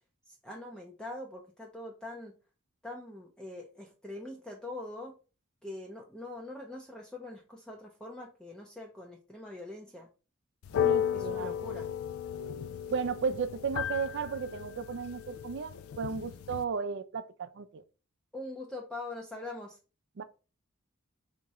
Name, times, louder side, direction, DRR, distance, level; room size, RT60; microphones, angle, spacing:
voice 1, 0.3-2.4 2.8-5.2 5.6-10.1 10.7-11.9 18.3-19.8, left 2 dB, 5° left, 0.5 m, -43 dB
sound 1, 10.6-16.6, left 9 dB, 85° left, 0.3 m, -34 dB
voice 2, 10.8-11.5 12.9-17.8 20.2-20.3, right 5 dB, 60° right, 0.4 m, -34 dB
3.5 x 2.9 x 4.1 m
head